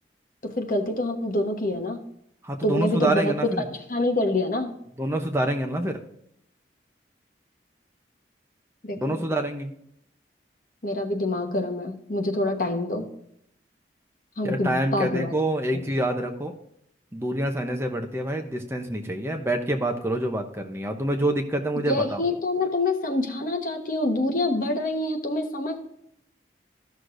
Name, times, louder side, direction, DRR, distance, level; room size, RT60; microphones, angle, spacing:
voice 1, 0.4-2.0 2.6-3.3 3.9-4.7 8.8-9.2 10.8-13.2 14.4-15.3 15.7-15.9 21.9-25.8, left 1 dB, 50° left, 4 dB, 1.2 m, -26 dB
voice 2, 2.4-3.7 5.0-6.0 9.0-9.7 14.4-16.5 17.1-22.2, right 1 dB, 15° right, 4 dB, 0.7 m, -27 dB
13.5 x 6.3 x 2.6 m, 0.75 s
head